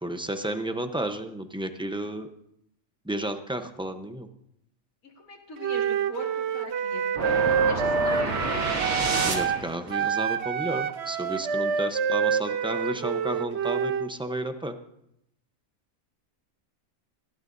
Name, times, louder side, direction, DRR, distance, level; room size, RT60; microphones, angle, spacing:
voice 1, 0.0-2.3 3.1-4.3 9.2-14.8, right 1 dB, 5° right, 7 dB, 0.6 m, -32 dB
voice 2, 5.0-7.1 7.4-8.6, left 1 dB, 85° left, 0 dB, 2.5 m, -40 dB
Wind instrument woodwind instrument, 5.6-9.6 9.9-14.1, right 7 dB, 60° right, 0.9 m, -27 dB
sound 1, 7.2-9.8, right 3 dB, 80° right, 2.2 m, -29 dB
19.0 x 15.5 x 2.7 m, 0.77 s
omnidirectional pair, 1.4 m